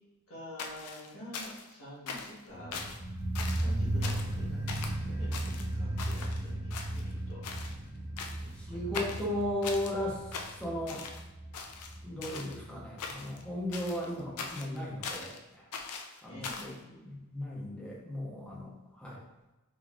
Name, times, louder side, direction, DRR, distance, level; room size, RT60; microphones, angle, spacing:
voice 1, 0.3-2.8 3.5-7.4 8.4-8.9 16.3-16.8, left 1 dB, 65° left, -7 dB, 1.5 m, -48 dB
sound 1, 0.6-1.7 2.1-2.4 2.7-3.0 3.4-3.7 4.0-4.4 4.7-5.0 5.3-6.4 6.7-7.2 7.4-7.8 8.2-8.6 8.9-9.9 10.3-11.2 11.5-12.6 13.0-13.4 13.7-15.4 15.7-16.8, left 5 dB, 85° left, 0.4 m, -41 dB
sound 2, 2.5-13.5 13.8-13.9, right 1 dB, 75° right, 1.1 m, -36 dB
voice 2, 8.5-10.2 10.6-11.0 12.0-15.7 16.2-19.2, left 1 dB, 5° left, -6 dB, 1.0 m, -36 dB
3.8 x 3.2 x 2.5 m, 1.0 s
head